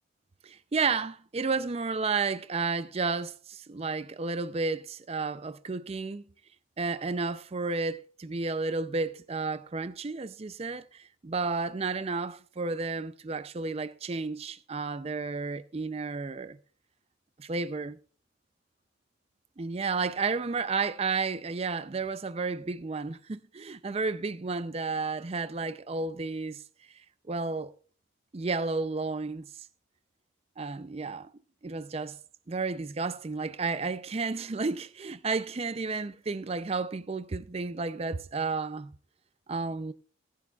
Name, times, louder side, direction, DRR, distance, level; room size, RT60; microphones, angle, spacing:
voice 1, 0.4-6.2 6.8-16.6 17.4-18.0 19.6-26.6 27.3-27.7 28.3-29.4 30.6-31.3 31.6-32.2 32.5-38.9 39.5-39.9, right 4 dB, 30° right, 0.4 m, -32 dB
16.5 x 11.0 x 2.3 m
head